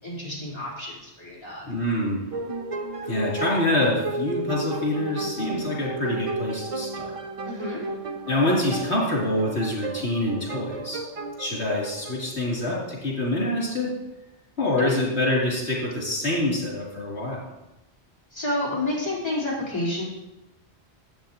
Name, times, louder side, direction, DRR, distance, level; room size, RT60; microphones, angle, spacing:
voice 1, 0.0-1.7 7.4-7.8 14.8-14.9 18.3-20.0, left 1 dB, 25° left, -8 dB, 3.9 m, -29 dB
voice 2, 1.7-2.3 3.0-7.2 8.3-11.0 11.4-13.9 14.6-17.5, left 1 dB, 75° left, -4 dB, 3.4 m, -26 dB
sound 1, 2.3-12.8, right 3 dB, 40° right, 0.5 m, -34 dB
12.5 x 8.1 x 3.0 m, 0.97 s
omnidirectional pair, 1.1 m